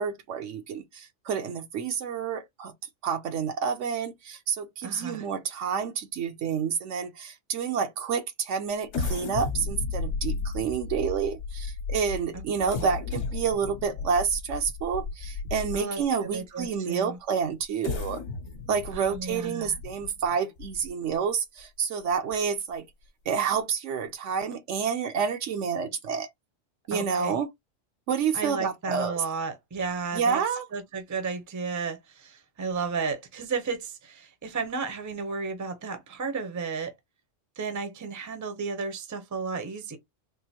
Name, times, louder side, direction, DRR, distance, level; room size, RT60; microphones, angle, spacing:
voice 1, 0.0-2.7 3.0-18.2 18.7-22.9 23.3-26.3 26.9-27.5 28.1-29.2 30.1-30.7, right 6 dB, 70° right, 1.0 m, -29 dB
voice 2, 4.8-5.3 12.3-12.4 12.8-12.9 15.7-16.0 16.3-17.2 18.9-19.8 26.9-27.4 28.3-30.4 30.7-36.9 37.6-40.0, right 4 dB, 20° right, 0.6 m, -33 dB
sound 1, 8.9-16.0 16.6-16.7 17.6-21.1 21.6-21.7 22.1-22.3, left 4 dB, 60° left, 0.9 m, -34 dB
3.6 x 2.5 x 2.8 m
omnidirectional pair, 1.3 m